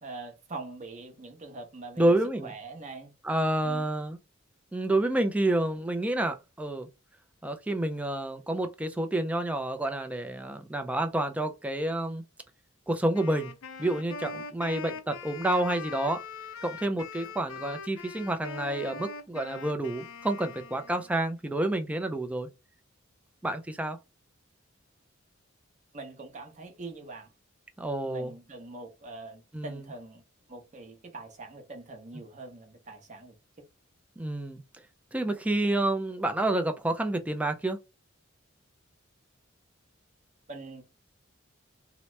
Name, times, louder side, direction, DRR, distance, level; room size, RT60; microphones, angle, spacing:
voice 1, 0.0-2.2 2.4-3.1 3.6-3.9 25.9-27.3 28.0-30.2 30.5-33.7 40.5-40.8, right 3 dB, 35° right, 0.7 m, -43 dB
voice 2, 2.0-2.5 3.2-4.2 4.7-6.9 7.4-12.2 12.9-13.5 13.8-16.2 16.6-22.5 23.4-24.0 27.8-28.3 29.5-29.8 34.2-34.6 35.1-37.8, right 1 dB, 5° right, 0.3 m, -29 dB
Wind instrument woodwind instrument, 13.1-21.3, left 5 dB, 85° left, 0.5 m, -42 dB
2.8 x 2.0 x 3.1 m
head